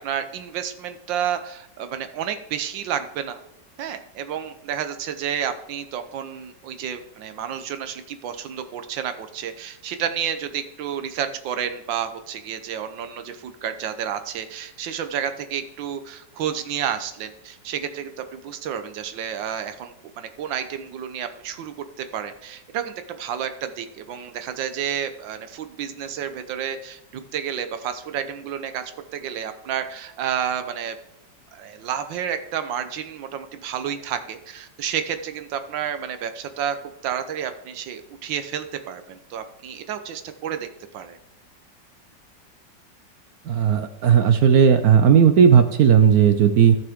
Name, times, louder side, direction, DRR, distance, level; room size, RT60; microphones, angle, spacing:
voice 1, 0.0-3.4 3.8-31.0 31.5-36.8 37.0-40.7 40.9-41.2, right 9 dB, 85° right, 9 dB, 1.5 m, -30 dB
voice 2, 43.5-46.8, right 7 dB, 65° right, 9 dB, 1.0 m, -15 dB
14.5 x 6.0 x 3.6 m, 0.82 s
omnidirectional pair, 2.0 m